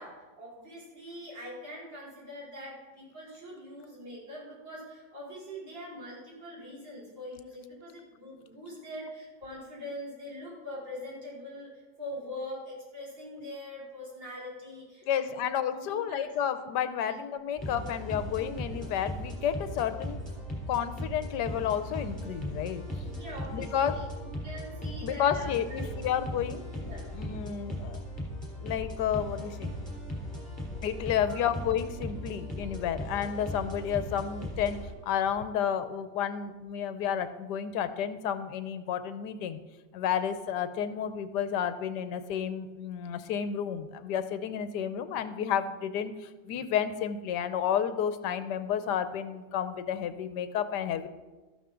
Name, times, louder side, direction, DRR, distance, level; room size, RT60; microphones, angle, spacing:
voice 1, 0.0-11.7 12.0-16.3 17.1-17.2 17.5-17.9 23.0-25.9 26.8-27.1 31.2-31.5, left 1 dB, 85° right, -7 dB, 5.9 m, -43 dB
voice 2, 15.1-20.2 20.7-22.8 23.5-24.0 25.0-26.7 27.1-28.0 28.6-29.7 30.8-39.6 39.9-46.1 46.5-51.1, left 9 dB, 70° left, 11 dB, 1.3 m, -31 dB
sound 1, 17.6-34.9, equal, 5° left, 3.5 m, -38 dB
13.5 x 12.5 x 3.8 m, 1.2 s
omnidirectional pair, 2.0 m